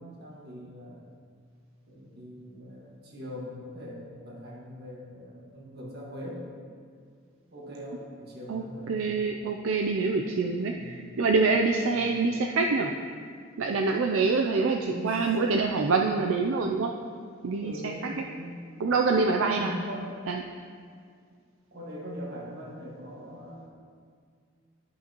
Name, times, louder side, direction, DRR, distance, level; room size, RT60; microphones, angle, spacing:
voice 1, 0.2-1.0 1.9-6.4 7.5-9.0 10.7-11.1 11.9-12.2 14.7-15.9 17.6-18.7 19.5-20.1 21.7-23.7, equal, 55° right, -4 dB, 1.8 m, -41 dB
voice 2, 8.5-12.9 13.6-16.9 17.4-18.1 18.8-19.8 20.3-20.4, right 4 dB, 80° right, 2 dB, 0.4 m, -26 dB
12.5 x 5.5 x 3.0 m, 2.1 s
head